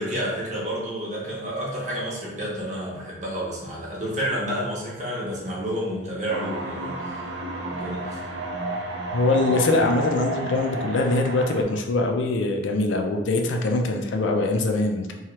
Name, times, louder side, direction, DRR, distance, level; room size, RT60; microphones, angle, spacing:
voice 1, 0.0-7.3 7.7-8.2, equal, 40° right, -5 dB, 0.8 m, -30 dB
sound 1, 6.3-11.6, right 2 dB, 65° right, 0.5 m, -31 dB
voice 2, 9.1-15.1, left 2 dB, 80° left, 3 dB, 0.4 m, -23 dB
2.9 x 2.3 x 3.0 m, 1.0 s
head